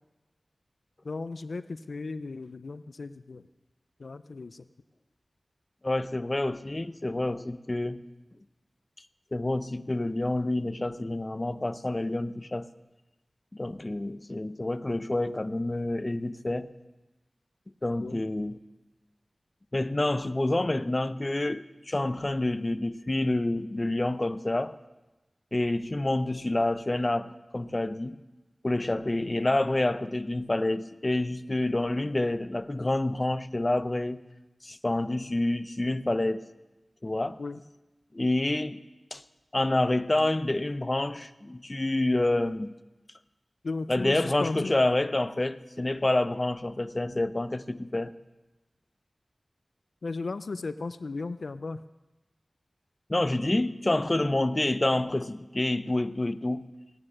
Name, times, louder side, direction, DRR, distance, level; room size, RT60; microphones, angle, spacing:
voice 1, 1.0-3.5 4.0-4.7 18.0-18.2 29.2-29.3 37.4-37.6 43.6-44.7 50.0-51.8, left 3 dB, 85° left, 0.4 m, -35 dB
voice 2, 5.8-8.0 9.3-12.7 13.5-16.7 17.8-18.6 19.7-24.8 25.5-28.2 28.6-34.2 34.6-36.5 37.0-37.4 38.1-38.8 39.1-39.2 39.5-42.7 43.9-48.1 53.1-56.7, left 2 dB, 35° left, 0.6 m, -28 dB
16.5 x 9.8 x 6.5 m
wide cardioid pair, 55°, 0 cm